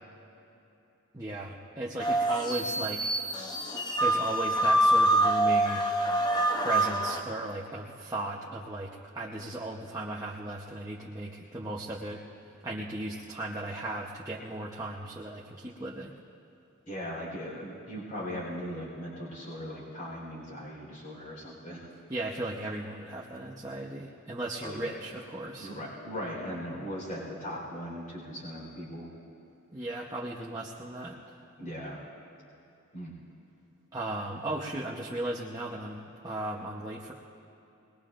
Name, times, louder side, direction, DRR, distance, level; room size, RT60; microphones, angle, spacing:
voice 1, 1.1-3.1 4.0-5.8 6.6-12.2 12.6-16.1 22.1-25.7 29.7-31.2 33.9-37.1, right 2 dB, 15° right, -5 dB, 0.9 m, -36 dB
sound 1, 2.0-7.2, right 1 dB, 20° left, 0.8 m, -26 dB
voice 2, 16.9-21.9 24.6-25.0 25.6-29.1 31.6-32.0 32.9-33.1, equal, 40° left, -4 dB, 4.2 m, -39 dB
23.0 x 20.5 x 2.6 m, 2.9 s
head